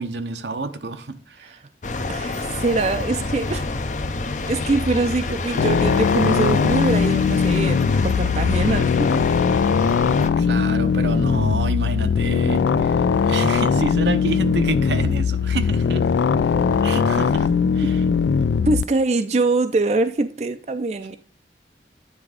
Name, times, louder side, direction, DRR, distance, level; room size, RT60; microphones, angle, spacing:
voice 1, 0.0-1.6 7.8-7.9 10.4-16.0 16.8-18.0, right 3 dB, 80° right, 0.8 m, -29 dB
sound 1, 1.8-10.3, left 3 dB, 45° left, 0.6 m, -28 dB
voice 2, 2.1-3.7 4.5-7.8 8.0-9.1 18.7-21.2, right 3 dB, 40° right, 0.4 m, -23 dB
sound 2, 5.6-18.8, left 6 dB, 75° left, 0.3 m, -20 dB
9.6 x 3.5 x 5.0 m
head